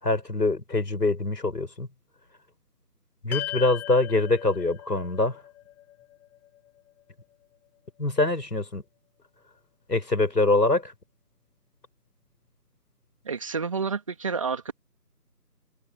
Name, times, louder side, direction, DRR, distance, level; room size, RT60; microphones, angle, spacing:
voice 1, 0.0-1.9 3.2-5.4 8.0-8.8 9.9-10.9, left 2 dB, 80° left, 6.7 m, -24 dB
sound 1, 3.3-7.8, left 14 dB, 5° left, 4.5 m, -39 dB
voice 2, 13.2-14.7, right 5 dB, 20° right, 2.9 m, -29 dB
figure-of-eight pair, 170°, 48 cm